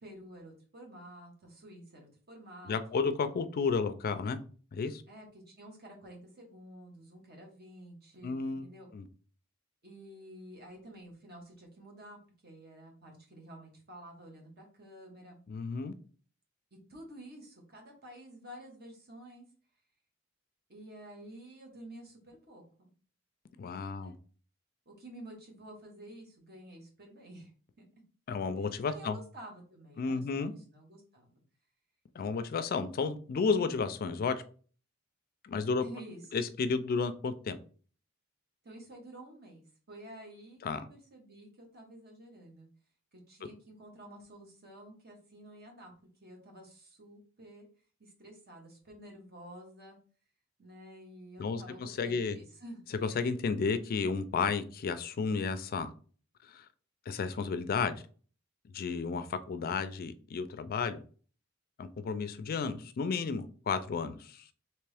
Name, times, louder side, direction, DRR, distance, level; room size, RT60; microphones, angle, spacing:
voice 1, 0.0-2.8 5.1-8.9 9.8-15.4 16.9-19.4 20.7-22.6 23.9-24.2 24.8-27.9 28.6-30.2 30.5-31.4 35.7-36.2 38.6-40.6 40.9-42.7 43.1-45.9 46.2-47.7 48.0-50.0 50.6-52.8, right 1 dB, 50° right, 1 dB, 1.3 m, -50 dB
voice 2, 2.7-4.4 4.7-5.0 8.2-8.6 8.9-9.0 15.5-15.9 23.6-24.1 28.3-29.2 30.0-30.5 32.1-34.4 35.4-35.8 36.3-37.6 40.6-40.8 51.4-52.4 53.0-55.9 56.4-56.7 57.1-58.0 58.7-61.0 61.8-64.4, left 5 dB, 45° left, 11 dB, 0.4 m, -32 dB
3.4 x 3.0 x 3.3 m, 0.41 s
head